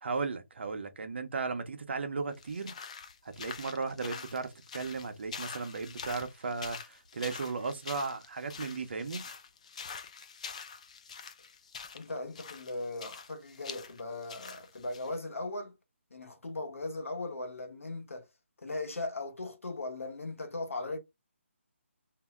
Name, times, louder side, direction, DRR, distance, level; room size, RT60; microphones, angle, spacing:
voice 1, 0.0-2.7 3.2-9.3, right 4 dB, 55° right, 0.7 m, -36 dB
sound 1, 2.3-15.1, left 6 dB, 30° left, 0.3 m, -45 dB
voice 2, 11.9-15.8 16.1-18.2 18.6-21.0, left 2 dB, 90° left, 1.0 m, -38 dB
2.7 x 2.1 x 3.4 m
hypercardioid pair, 165°, 7 cm